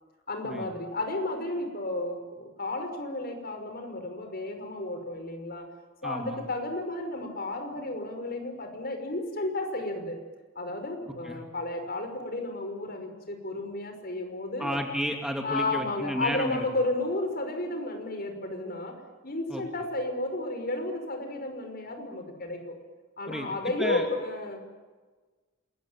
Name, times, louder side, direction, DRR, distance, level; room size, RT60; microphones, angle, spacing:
voice 1, 0.3-5.7 6.0-10.2 10.6-14.8 15.4-22.8 23.2-24.6, left 2 dB, 50° left, 6 dB, 5.5 m, -32 dB
voice 2, 6.0-6.4 11.2-11.4 14.6-16.7 19.5-19.6 23.3-24.0, equal, 5° right, 3 dB, 2.4 m, -32 dB
28.0 x 21.5 x 9.2 m, 1.3 s
head